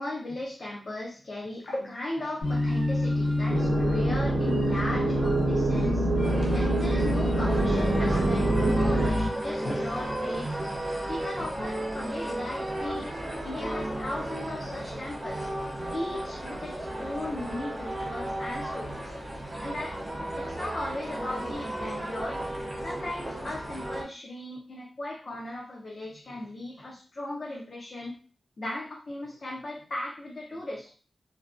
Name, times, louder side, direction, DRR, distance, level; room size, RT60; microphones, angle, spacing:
voice 1, 0.0-6.1 6.5-10.5 10.9-13.1 13.4-15.6 15.9-19.1 19.6-20.0 20.4-28.2 28.6-30.9, left 1 dB, 40° left, -2 dB, 0.4 m, -37 dB
sound 1, 2.4-9.3, left 1 dB, 90° left, 1.1 m, -27 dB
sound 2, 3.5-9.1, right 3 dB, 85° right, 0.5 m, -27 dB
sound 3, 6.2-24.0, right 1 dB, 25° right, 0.5 m, -34 dB
2.5 x 2.1 x 2.3 m, 0.38 s
wide cardioid pair, 180°, 0 cm